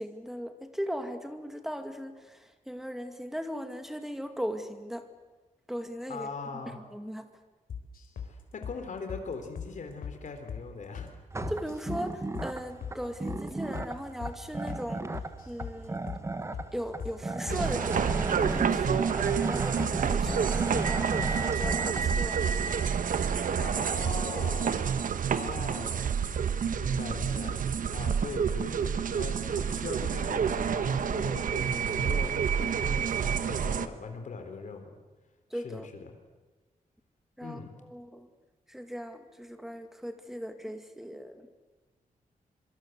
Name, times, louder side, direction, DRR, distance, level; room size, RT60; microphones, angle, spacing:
voice 1, 0.0-5.1 5.7-7.2 11.5-15.0 15.5-16.0 16.7-19.1 19.5-22.4 35.5-35.9 37.4-37.6 37.9-38.3 38.7-41.5, equal, ahead, 7 dB, 2.1 m, -38 dB
voice 2, 6.1-6.8 8.2-11.1 23.6-25.0 25.3-26.0 26.8-27.6 27.9-35.0 35.5-36.1 37.4-37.7, left 4 dB, 60° left, 6 dB, 4.0 m, -40 dB
sound 1, 7.7-8.3 8.6-8.8 9.1-9.2 9.6-9.7 10.0-10.2 10.5-10.6 10.9-11.1 11.4-12.0 12.3-12.5 12.8-13.0 13.3-13.4 13.7-13.9 14.2-14.4 14.7-14.8 15.1-15.8 16.1-16.2 16.5-16.7 17.0-17.2 17.5-17.6 17.9-18.1 18.4-18.6 18.9-19.5 19.8-19.9 20.2-20.4 20.7-20.9 21.2-21.3 21.6-21.8 22.1-22.3, left 7 dB, 90° left, 4.0 m, -39 dB
sound 2, 11.3-22.0, right 2 dB, 20° right, 1.3 m, -36 dB
sound 3, 17.5-33.9, right 7 dB, 70° right, 1.2 m, -28 dB
25.5 x 24.5 x 8.1 m, 1.3 s
wide cardioid pair, 155°, 14 cm